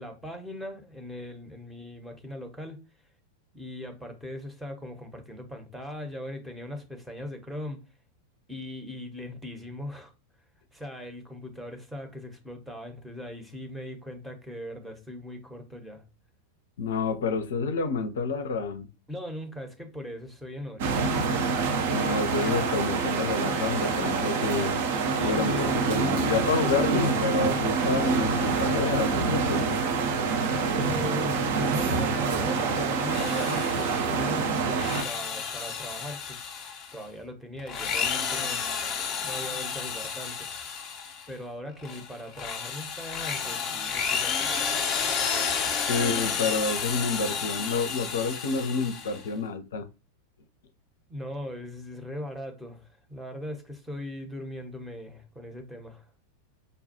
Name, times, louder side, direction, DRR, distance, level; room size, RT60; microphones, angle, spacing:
voice 1, 0.0-2.8 3.5-7.8 8.5-10.1 10.7-16.0 19.1-21.0 25.1-25.8 30.6-38.6 39.2-40.5 41.3-44.8 51.1-56.0, left 1 dB, 5° right, 0.8 m, -39 dB
voice 2, 16.8-18.9 21.9-24.7 25.2-29.8 45.8-49.9, left 4 dB, 60° left, 0.5 m, -29 dB
sound 1, 20.8-35.0, right 4 dB, 50° right, 0.6 m, -26 dB
Drill, 33.1-34.1 34.6-37.0 37.6-41.3 41.8-49.3, left 6 dB, 30° left, 0.7 m, -31 dB
5.2 x 2.3 x 2.8 m
figure-of-eight pair, 90°, 0 cm